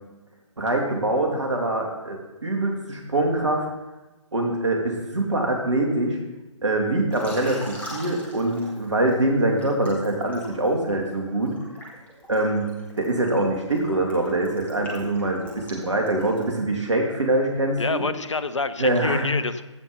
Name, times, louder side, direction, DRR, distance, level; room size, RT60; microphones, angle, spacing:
voice 1, 0.6-3.6 4.3-6.2 6.6-11.5 12.3-12.7 13.0-18.0 18.8-19.2, right 2 dB, 65° right, 1 dB, 2.6 m, -24 dB
Liquid, 7.1-9.1 9.6-16.6, equal, 10° left, 1.9 m, -41 dB
voice 2, 17.8-19.6, left 4 dB, 70° left, 14 dB, 0.8 m, -27 dB
15.0 x 5.5 x 5.5 m, 1.1 s
figure-of-eight pair, 135°, 16 cm